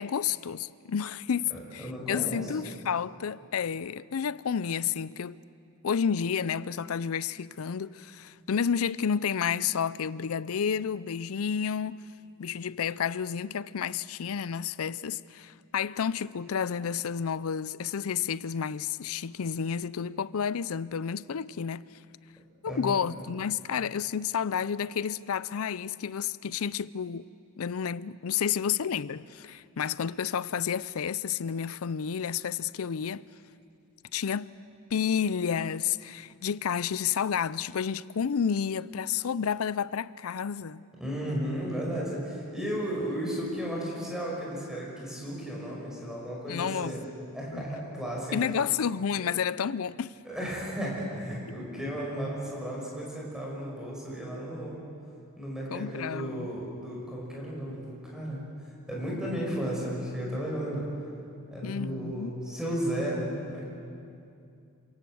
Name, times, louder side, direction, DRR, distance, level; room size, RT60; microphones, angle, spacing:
voice 1, 0.0-5.4 5.8-12.1 12.4-21.8 22.6-27.3 27.6-33.2 34.1-34.5 34.9-40.8 46.5-47.0 47.5-47.6 48.3-50.1 51.5-51.6 55.7-56.5 61.6-62.3, left 7 dB, 75° left, 0.5 m, -30 dB
voice 2, 1.5-2.5 22.7-22.9 41.0-47.0 47.3-48.4 50.2-54.8 55.4-58.4 58.9-60.9 61.5-63.7, equal, 5° right, 6.0 m, -34 dB
27.0 x 18.0 x 7.8 m
head